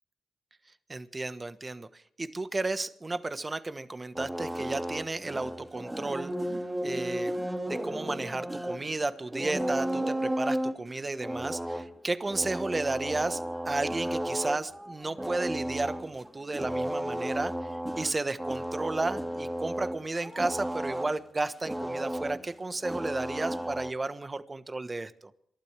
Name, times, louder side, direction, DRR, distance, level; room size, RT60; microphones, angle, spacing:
voice 1, 0.9-6.3 6.8-7.4 7.7-17.7 18.0-25.3, right 2 dB, 30° right, 12 dB, 1.3 m, -33 dB
sound 1, 4.1-21.2 21.6-23.9, right 1 dB, 10° right, 2.2 m, -34 dB
27.5 x 12.5 x 3.5 m, 0.69 s
supercardioid pair, 50°, 0 cm